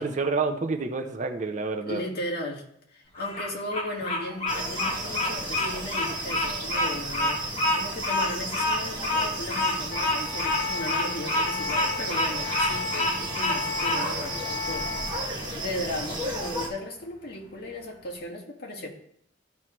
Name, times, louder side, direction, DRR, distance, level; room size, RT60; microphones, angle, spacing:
voice 1, 0.0-2.0, right 4 dB, 40° right, 5 dB, 0.6 m, -28 dB
voice 2, 1.9-2.6 2.9-7.4 7.7-15.2 15.5-18.9, left 1 dB, 55° left, -2 dB, 1.6 m, -36 dB
Bird vocalization bird call bird song, 3.2-14.0, left 1 dB, 35° left, 2.3 m, -27 dB
sound 1, 4.5-16.7, right 1 dB, 25° right, 1.3 m, -34 dB
sound 2, 9.9-15.1, left 5 dB, 80° left, 2.3 m, -35 dB
13.5 x 4.7 x 3.0 m, 0.71 s
head